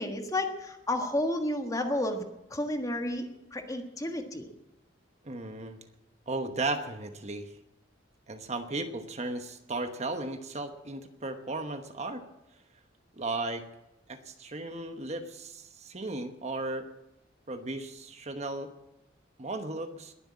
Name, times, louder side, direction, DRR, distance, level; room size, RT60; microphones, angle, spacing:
voice 1, 0.0-2.2 2.5-3.3 3.5-4.5, left 1 dB, 20° left, 5 dB, 1.5 m, -31 dB
voice 2, 5.2-5.8 6.3-7.5 8.3-12.2 13.1-13.6 14.1-16.9 17.5-18.7 19.4-20.1, right 2 dB, 35° right, 7 dB, 1.1 m, -35 dB
20.5 x 7.8 x 8.5 m, 0.92 s
head